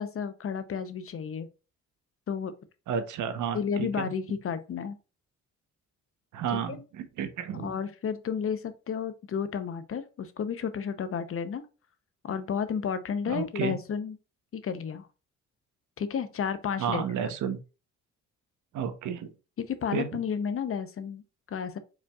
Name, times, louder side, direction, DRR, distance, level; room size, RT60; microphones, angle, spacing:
voice 1, 0.0-1.5 2.3-2.5 3.5-5.0 6.5-6.8 7.5-11.7 12.2-14.2 14.5-15.1 16.0-17.0 19.6-21.8, left 7 dB, 45° left, 0.8 m, -32 dB
voice 2, 2.9-4.1 6.3-7.7 13.3-13.7 16.8-17.6 18.7-19.3 19.9-20.1, right 7 dB, 75° right, 1.0 m, -31 dB
5.0 x 4.4 x 2.4 m
cardioid pair, 90°, 30 cm